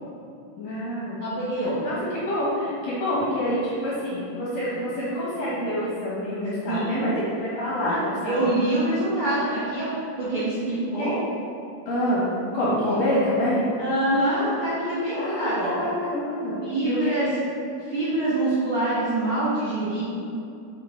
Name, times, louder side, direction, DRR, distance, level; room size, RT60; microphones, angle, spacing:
voice 1, 0.6-1.2 1.8-8.6 11.0-11.1 11.9-13.6 15.2-17.4, equal, 55° left, -8 dB, 2.2 m, -27 dB
voice 2, 1.2-1.8 6.7-7.1 7.8-11.2 12.8-13.0 13.8-15.8 16.6-17.3 17.8-20.0, right 1 dB, 50° right, -12 dB, 1.8 m, -25 dB
7.8 x 6.4 x 3.9 m, 2.6 s
omnidirectional pair, 4.3 m